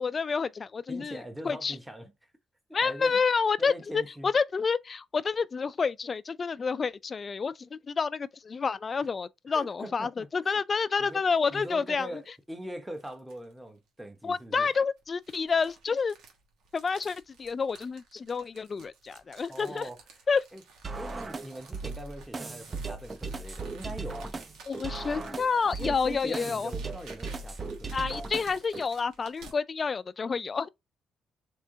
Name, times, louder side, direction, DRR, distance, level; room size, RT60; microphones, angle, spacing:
voice 1, 0.0-1.8 2.7-12.2 14.2-16.1 16.7-19.9 20.3-20.4 24.7-26.7 27.9-30.7, left 5 dB, 40° left, 0.3 m, -29 dB
voice 2, 0.9-2.1 2.8-3.2 3.6-4.3 9.5-10.3 11.0-11.2 11.5-14.7 19.5-20.0 20.5-20.6 20.9-24.3 25.8-27.9, right 1 dB, 10° right, 1.1 m, -42 dB
sound 1, 11.3-11.8 12.3-12.4 12.9-13.5 14.4-29.6, right 4 dB, 90° right, 1.2 m, -54 dB
sound 2, 20.8-28.8, right 3 dB, 30° right, 0.6 m, -37 dB
3.7 x 3.3 x 2.7 m
cardioid pair, 90°, 0 cm